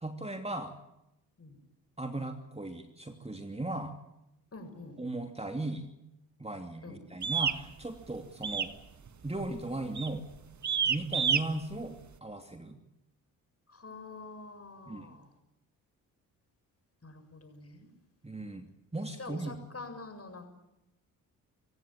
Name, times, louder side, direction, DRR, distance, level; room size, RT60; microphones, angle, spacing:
voice 1, 0.0-0.7 2.0-4.0 5.0-5.9 6.4-8.7 9.2-10.3 10.8-12.8 14.9-15.2 18.2-19.6, right 2 dB, 15° right, 6 dB, 2.8 m, -37 dB
voice 2, 4.5-5.0 6.8-7.0 13.7-15.2 17.0-17.9 19.2-20.5, left 3 dB, 35° left, 6 dB, 7.4 m, -46 dB
sound 1, 7.2-7.6 8.4-8.8 9.1-9.4 10.0-10.2 10.6-11.4, right 7 dB, 40° right, 1.6 m, -28 dB
25.5 x 16.0 x 9.1 m, 0.88 s
hypercardioid pair, 50°, 43 cm